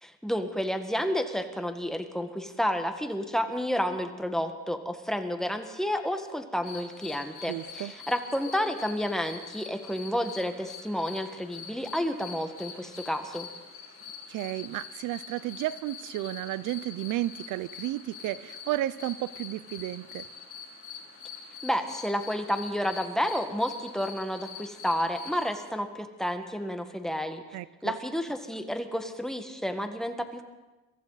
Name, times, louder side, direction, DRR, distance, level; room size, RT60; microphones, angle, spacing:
voice 1, 0.0-13.5 21.6-27.4 27.8-30.4, equal, ahead, 6 dB, 1.6 m, -30 dB
sound 1, 6.6-25.5, left 6 dB, 50° left, 6.7 m, -45 dB
voice 2, 7.5-7.9 14.3-20.3 27.5-28.0, right 15 dB, 85° right, 18 dB, 0.5 m, -33 dB
23.0 x 15.0 x 4.1 m, 1.1 s
cardioid pair, 90°, 30 cm